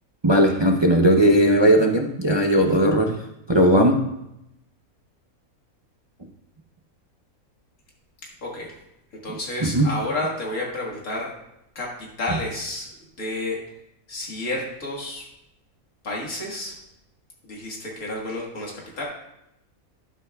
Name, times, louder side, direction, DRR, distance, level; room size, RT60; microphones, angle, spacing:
voice 1, 0.2-3.2 3.5-4.0 9.6-9.9, right 1 dB, 35° right, 2 dB, 0.4 m, -17 dB
voice 2, 8.4-8.8 9.2-11.4 11.8-12.9 13.2-13.6 14.1-15.3 16.0-16.8 17.4-19.0, left 2 dB, 80° left, -3 dB, 2.2 m, -30 dB
12.0 x 9.6 x 2.3 m, 0.84 s
omnidirectional pair, 1.5 m